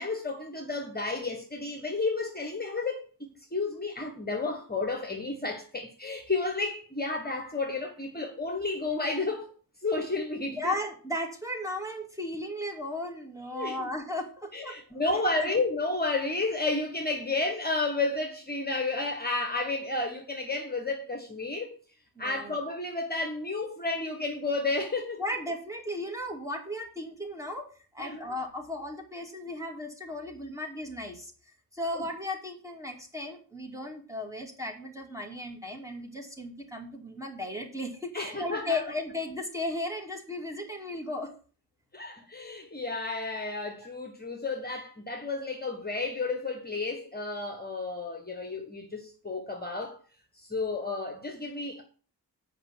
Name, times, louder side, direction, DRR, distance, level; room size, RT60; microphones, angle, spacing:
voice 1, 0.0-9.5 9.8-10.7 13.5-13.9 14.5-21.8 22.2-25.2 28.0-28.3 31.9-32.1 38.1-38.8 41.9-50.0 50.4-51.8, left 3 dB, 25° left, 1.4 m, -32 dB
voice 2, 10.6-15.0 15.4-15.5 22.2-22.6 25.2-27.7 27.9-31.3 31.7-41.3, left 1 dB, 10° right, 2.4 m, -35 dB
8.1 x 5.5 x 7.2 m
wide cardioid pair, 95°, 40 cm